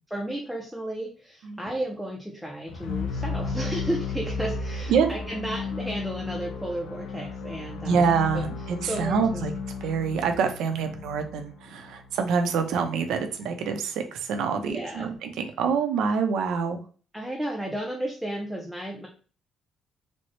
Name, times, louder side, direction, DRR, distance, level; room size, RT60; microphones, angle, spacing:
voice 1, 0.1-8.1 8.3-8.4 8.8-9.4 14.6-15.1 17.1-19.1, right 1 dB, ahead, 0 dB, 0.4 m, -33 dB
sound 1, 2.7-12.7, left 4 dB, 80° left, 0.5 m, -34 dB
voice 2, 7.9-9.5 9.8-16.8, right 6 dB, 80° right, 6 dB, 0.5 m, -26 dB
4.1 x 2.0 x 3.0 m, 0.39 s
cardioid pair, 160°, 0 cm